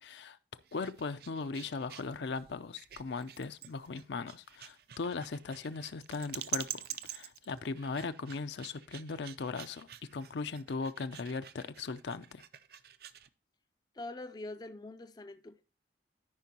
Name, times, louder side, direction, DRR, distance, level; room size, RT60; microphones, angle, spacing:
voice 1, 0.0-12.4, left 4 dB, 75° left, 0.5 m, -39 dB
sound 1, 0.6-13.3, right 12 dB, 55° right, 0.4 m, -46 dB
voice 2, 13.9-15.6, left 2 dB, 20° left, 0.4 m, -44 dB
13.0 x 5.3 x 2.8 m
head